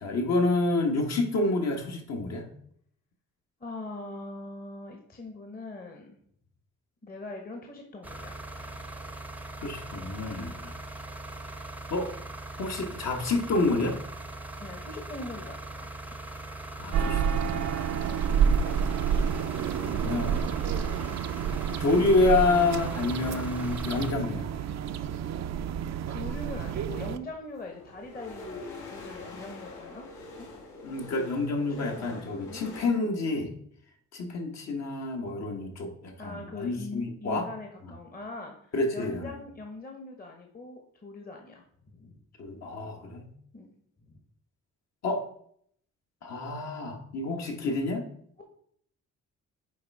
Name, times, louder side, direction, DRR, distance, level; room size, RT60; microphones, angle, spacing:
voice 1, 0.0-2.5 9.6-10.7 11.9-12.1 12.6-14.0 16.8-17.8 19.7-20.5 21.8-24.5 30.8-33.5 34.1-37.5 38.7-39.4 42.4-43.3 45.0-45.2 46.2-48.1, left 2 dB, 60° left, 3 dB, 1.5 m, -28 dB
voice 2, 3.6-6.2 7.0-8.8 10.3-10.6 14.6-15.9 26.1-30.1 30.3-30.5 31.7-32.6 36.2-42.2 43.5-43.7 44.1-44.2, left 2 dB, 30° left, 3 dB, 1.1 m, -42 dB
sound 1, 8.0-24.1, right 2 dB, 5° right, 0.7 m, -41 dB
sound 2, 16.9-27.2, right 7 dB, 60° right, 0.5 m, -29 dB
sound 3, 22.8-25.0 26.0-26.1 26.4-32.9, left 2 dB, 75° left, 1.9 m, -46 dB
8.5 x 3.4 x 4.7 m, 0.66 s
cardioid pair, 90°, 30 cm